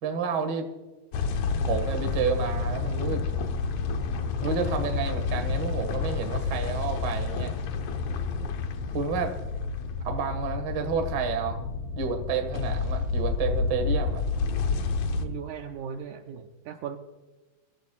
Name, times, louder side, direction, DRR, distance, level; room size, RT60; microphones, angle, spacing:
voice 1, 0.0-0.7 1.6-3.2 4.4-7.5 8.9-9.3 10.0-11.6 11.9-14.2, right 5 dB, 45° right, 6 dB, 1.6 m, -30 dB
sound 1, 1.1-15.3, left 4 dB, 65° left, 1.9 m, -29 dB
voice 2, 15.2-17.0, right 8 dB, 75° right, 5 dB, 2.0 m, -38 dB
24.0 x 13.0 x 2.3 m, 1.2 s
omnidirectional pair, 4.0 m